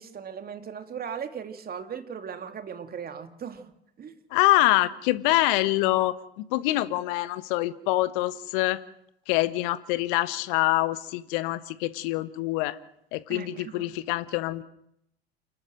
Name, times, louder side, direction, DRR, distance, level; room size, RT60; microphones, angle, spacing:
voice 1, 0.0-3.7 4.0-4.2 13.3-13.8, right 7 dB, 30° right, 8 dB, 2.4 m, -38 dB
voice 2, 4.3-8.8 9.3-12.8 13.1-14.6, left 17 dB, 55° left, 15 dB, 1.4 m, -25 dB
28.5 x 12.5 x 7.8 m, 0.77 s
figure-of-eight pair, 75°, 31 cm